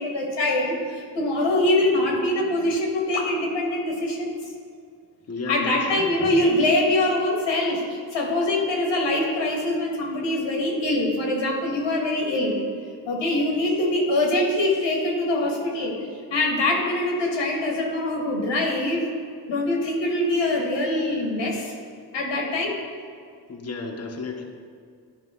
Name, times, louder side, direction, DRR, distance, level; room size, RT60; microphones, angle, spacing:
voice 1, 0.0-4.3 5.5-12.5 13.1-16.0 16.3-19.0 19.5-21.7 22.1-22.7, left 1 dB, 90° left, -1 dB, 1.7 m, -23 dB
voice 2, 5.3-6.1 22.5-22.6 23.5-24.4, left 4 dB, 35° left, 2 dB, 1.1 m, -33 dB
11.0 x 5.1 x 3.7 m, 2.2 s
cardioid pair, 65°, 42 cm